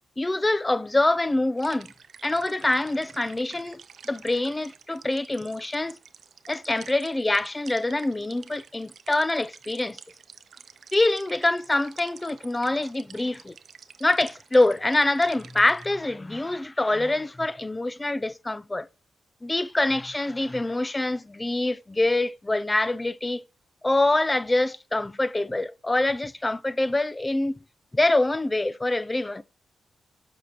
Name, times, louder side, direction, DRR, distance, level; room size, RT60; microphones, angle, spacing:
voice 1, 0.2-1.9 2.2-6.0 6.5-10.0 10.9-13.5 14.0-18.9 19.4-23.4 23.8-27.6 27.9-29.4, left 2 dB, 25° left, 0.4 m, -25 dB
sound 1, 1.6-15.9, right 7 dB, 70° right, 0.4 m, -49 dB
7.3 x 5.4 x 2.9 m
supercardioid pair, 45°, 0 cm